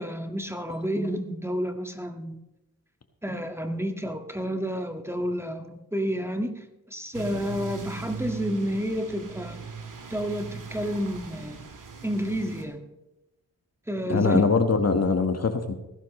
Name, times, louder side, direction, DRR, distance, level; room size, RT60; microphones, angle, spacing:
voice 1, 0.0-2.4 3.2-6.6 6.9-9.6 10.1-11.6 12.0-12.8 13.9-14.4, equal, 5° right, 5 dB, 1.8 m, -30 dB
sound 1, 7.1-12.6, right 5 dB, 60° right, 1.9 m, -40 dB
voice 2, 14.1-15.7, left 4 dB, 45° left, 7 dB, 1.5 m, -22 dB
19.5 x 11.5 x 3.2 m, 0.93 s
cardioid pair, 50°, 35 cm